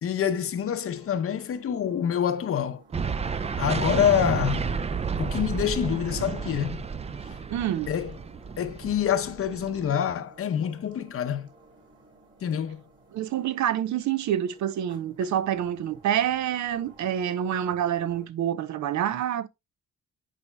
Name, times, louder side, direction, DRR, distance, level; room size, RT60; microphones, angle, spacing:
voice 1, 0.0-2.8 3.3-4.7 5.2-6.8 7.3-7.4 7.9-8.2 8.6-11.5 12.4-12.8, left 9 dB, 50° left, 0.7 m, -26 dB
sound 1, 0.9-18.3, right 3 dB, 40° right, 2.5 m, -55 dB
sound 2, 2.9-9.9, right 5 dB, 20° right, 0.4 m, -31 dB
voice 2, 7.5-7.9 13.1-19.5, right 10 dB, 70° right, 0.6 m, -27 dB
10.0 x 4.2 x 2.2 m
cardioid pair, 90°, 30 cm